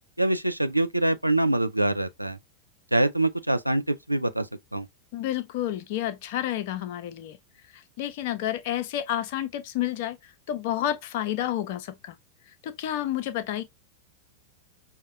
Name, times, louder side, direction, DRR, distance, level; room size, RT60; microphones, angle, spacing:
voice 1, 0.2-2.4 2.9-4.9, right 1 dB, 90° right, 0.3 m, -25 dB
voice 2, 5.1-7.4 7.7-12.1 12.6-13.6, left 12 dB, 50° left, 0.5 m, -30 dB
5.5 x 2.1 x 2.6 m
figure-of-eight pair, 90°, 0 cm